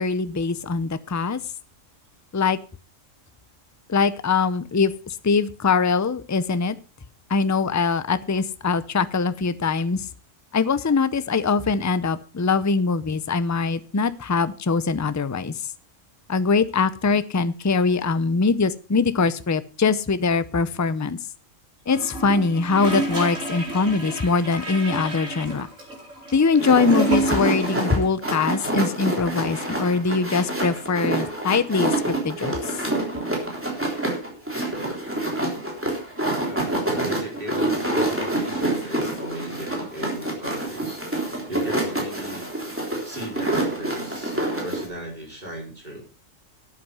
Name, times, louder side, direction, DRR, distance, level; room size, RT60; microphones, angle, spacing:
voice 1, 0.0-1.4 2.3-2.6 3.9-6.8 7.3-10.0 10.5-15.5 16.3-21.2 21.9-25.7 26.3-32.6, left 4 dB, 25° left, 14 dB, 0.4 m, -22 dB
Gurgling / Toilet flush, 21.9-28.0 28.2-28.3, right 2 dB, 80° right, 4.0 m, -28 dB
sound 1, 26.6-44.9, right 1 dB, 10° right, 3.5 m, -27 dB
voice 2, 36.4-41.0 41.5-42.5 43.0-44.4 44.6-46.0, right 1 dB, 35° right, -1 dB, 5.3 m, -37 dB
12.5 x 8.7 x 5.5 m, 0.36 s
omnidirectional pair, 1.4 m